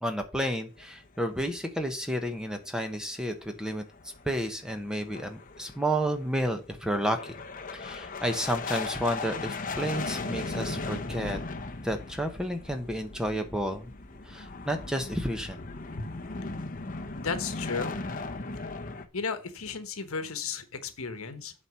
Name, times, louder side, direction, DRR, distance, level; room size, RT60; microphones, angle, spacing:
voice 1, 0.0-7.4 7.7-11.4 11.8-13.9 14.2-15.6, right 1 dB, 5° right, 6 dB, 0.9 m, -31 dB
sound 1, 0.7-2.4 2.7-2.8 3.2-3.3 3.7-19.0, left 3 dB, 40° left, 0.8 m, -38 dB
voice 2, 17.2-18.0 19.1-21.5, left 5 dB, 75° left, 10 dB, 1.2 m, -34 dB
8.0 x 4.3 x 6.8 m, 0.33 s
head